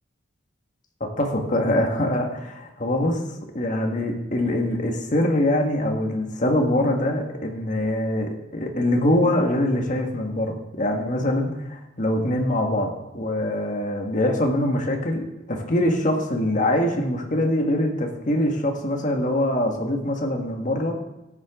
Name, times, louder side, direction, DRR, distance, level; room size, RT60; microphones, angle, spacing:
voice 1, 1.0-3.3 3.5-21.0, left 1 dB, 40° left, 2 dB, 1.7 m, -23 dB
14.0 x 10.0 x 3.7 m, 1.0 s
head